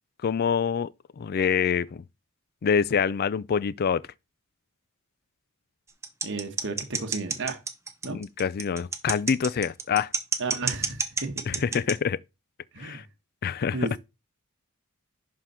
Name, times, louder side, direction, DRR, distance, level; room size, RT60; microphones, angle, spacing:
voice 1, 0.2-0.9 1.2-2.0 2.6-4.1 8.1-10.1 11.5-12.2 12.8-13.0 13.4-13.8, left 6 dB, 45° left, 0.4 m, -26 dB
sound 1, 6.0-11.9, right 4 dB, 15° right, 0.8 m, -28 dB
voice 2, 6.2-7.6 8.0-8.2 10.4-11.8 12.7-13.1 13.7-14.0, right 3 dB, 60° right, 1.3 m, -33 dB
11.0 x 3.8 x 4.3 m
head